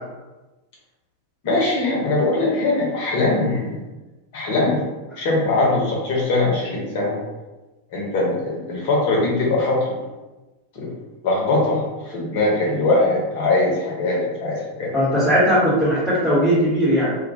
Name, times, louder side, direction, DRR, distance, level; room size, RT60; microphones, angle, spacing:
voice 1, 1.4-3.8 4.3-4.8 5.2-7.2 7.9-9.9 10.7-10.9 11.2-14.9, left 2 dB, 50° left, -3 dB, 0.8 m, -21 dB
voice 2, 14.9-17.1, equal, ahead, -10 dB, 0.9 m, -18 dB
2.2 x 2.1 x 2.7 m, 1.1 s
figure-of-eight pair, 90°, 0 cm